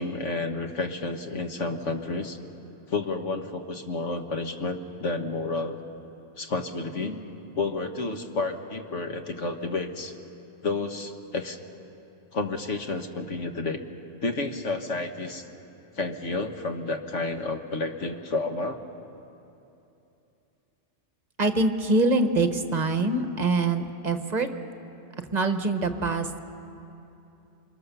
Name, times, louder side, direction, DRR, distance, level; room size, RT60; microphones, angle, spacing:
voice 1, 0.0-2.4 2.9-5.8 6.4-7.2 7.6-10.1 10.6-11.6 12.3-13.8 14.2-15.4 16.0-18.8, left 3 dB, 80° left, 5 dB, 1.7 m, -30 dB
voice 2, 21.4-24.5 25.3-26.4, right 2 dB, 35° right, 7 dB, 1.3 m, -24 dB
29.0 x 23.5 x 6.9 m, 2.8 s
omnidirectional pair, 1.2 m